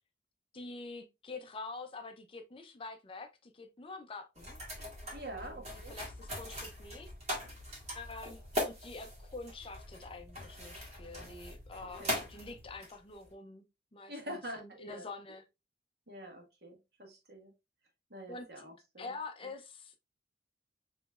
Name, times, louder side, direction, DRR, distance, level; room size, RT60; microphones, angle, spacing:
voice 1, 0.5-4.6 5.3-7.1 7.9-13.7 13.9-15.5 18.3-18.5 19.0-20.0, left 3 dB, 30° left, 0.5 m, -46 dB
sound 1, 4.4-13.3, left 1 dB, 40° right, 1.7 m, -41 dB
voice 2, 5.1-5.9 12.0-12.1 14.1-15.1 16.1-17.5 18.1-19.1 19.4-19.5, equal, 60° right, 1.4 m, -46 dB
5.6 x 3.0 x 2.4 m
head